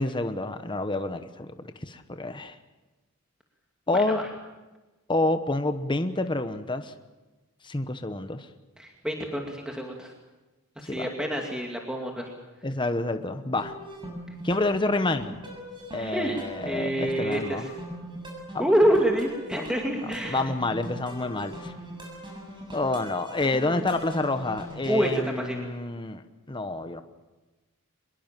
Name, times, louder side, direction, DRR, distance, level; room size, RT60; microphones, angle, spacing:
voice 1, 0.0-1.5 1.8-2.6 3.9-4.2 5.1-6.9 7.6-8.5 10.8-11.1 12.6-13.7 14.4-15.4 15.9-17.7 18.5-18.6 20.2-21.7 22.7-26.2 26.5-27.0, left 2 dB, 20° left, 8 dB, 1.1 m, -28 dB
voice 2, 8.8-10.1 10.8-12.3 15.9-16.4 16.6-17.7 18.6-20.4 24.9-25.6, right 1 dB, 5° right, 1 dB, 2.4 m, -27 dB
sound 1, 13.4-25.1, right 1 dB, 20° right, 6.9 m, -41 dB
24.5 x 22.0 x 7.5 m, 1.1 s
head